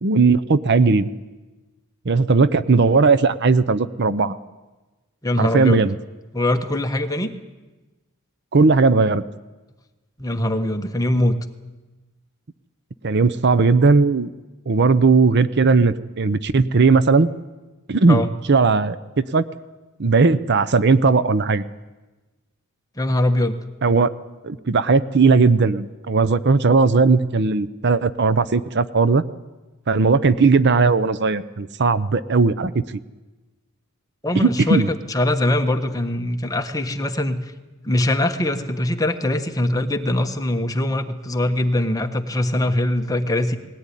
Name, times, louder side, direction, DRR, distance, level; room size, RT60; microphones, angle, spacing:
voice 1, 0.0-1.1 2.1-4.3 5.4-6.0 8.5-9.2 13.0-14.3 14.7-17.3 17.9-18.2 18.5-19.0 19.3-19.4 20.0-21.6 23.8-24.1 24.4-29.2 29.9-32.8 34.3-34.9, right 4 dB, 50° right, 14 dB, 0.7 m, -17 dB
voice 2, 5.2-5.9 6.3-7.3 10.2-11.4 18.1-18.3 23.0-23.6 34.2-37.5 37.8-43.6, left 1 dB, 15° left, 6 dB, 1.3 m, -22 dB
20.0 x 17.5 x 10.0 m, 1.2 s
head